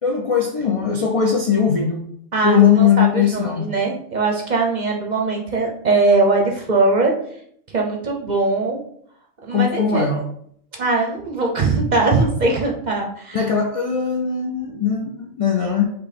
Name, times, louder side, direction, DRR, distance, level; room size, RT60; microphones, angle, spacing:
voice 1, 0.0-2.0 2.4-3.7 9.5-10.2 13.3-15.9, left 7 dB, 65° left, 1 dB, 0.3 m, -19 dB
voice 2, 2.3-7.1 7.7-8.8 9.5-10.1 10.7-13.4, right 3 dB, 45° right, 0 dB, 0.6 m, -20 dB
5.4 x 2.2 x 4.1 m, 0.67 s
omnidirectional pair, 1.4 m